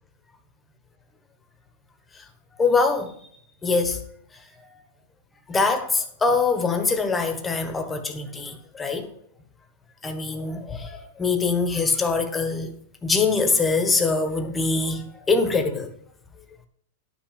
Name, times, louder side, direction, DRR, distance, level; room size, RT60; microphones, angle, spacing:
voice 1, 2.5-3.1 3.6-4.0 5.5-9.1 10.0-12.7 13.0-15.9, left 4 dB, 10° left, 1.3 m, -23 dB
11.0 x 6.0 x 5.2 m
supercardioid pair, 160°, 0 cm